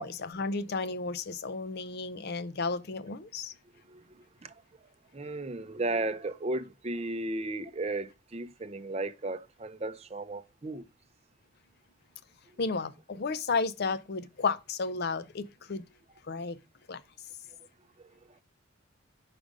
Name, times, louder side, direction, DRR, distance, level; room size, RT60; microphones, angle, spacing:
voice 1, 0.0-3.5 12.6-15.8 16.3-16.6 16.9-17.0, left 4 dB, 50° left, 0.5 m, -33 dB
voice 2, 5.1-10.8, right 2 dB, 30° right, 0.6 m, -34 dB
5.0 x 5.0 x 5.1 m
head